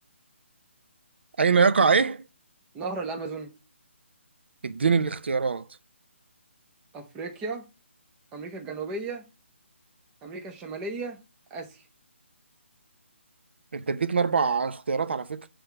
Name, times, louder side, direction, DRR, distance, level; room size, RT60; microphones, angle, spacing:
voice 1, 1.4-2.2 4.6-5.7 13.7-15.5, right 5 dB, 55° right, 0.7 m, -23 dB
voice 2, 2.7-3.5 6.9-7.7 8.3-9.2 10.2-11.2 11.5-11.8, right 3 dB, 10° right, 0.6 m, -35 dB
7.6 x 3.4 x 5.9 m
hypercardioid pair, 175°, 7 cm